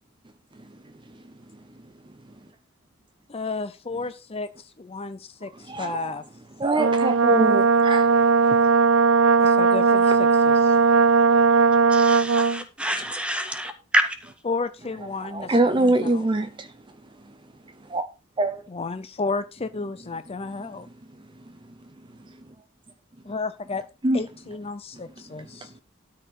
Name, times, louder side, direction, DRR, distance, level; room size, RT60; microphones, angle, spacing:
voice 1, 3.3-6.2 7.4-7.7 9.4-10.8 14.4-16.3 18.7-20.9 23.2-23.8 24.1-25.7, left 4 dB, 30° left, 0.6 m, -32 dB
voice 2, 5.7-6.1 6.6-8.1 8.6-8.7 15.3-16.7 17.9-18.0 18.4-18.6 24.0-24.2, right 2 dB, 25° right, 0.7 m, -23 dB
Brass instrument, 6.8-12.6, right 4 dB, 70° right, 0.4 m, -18 dB
voice 3, 11.9-14.3, right 1 dB, 5° right, 1.7 m, -27 dB
13.0 x 4.4 x 6.4 m
head